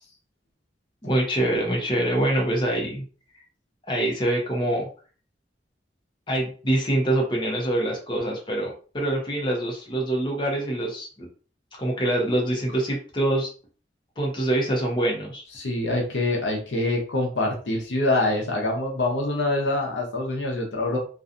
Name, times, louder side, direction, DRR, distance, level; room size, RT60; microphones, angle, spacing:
voice 1, 1.0-3.0 3.9-4.9 6.3-11.3 11.8-13.5 14.2-15.4, right 1 dB, 25° left, -1 dB, 0.7 m, -25 dB
voice 2, 15.6-21.0, left 2 dB, 90° left, 0 dB, 0.8 m, -25 dB
2.6 x 2.3 x 2.5 m, 0.39 s
head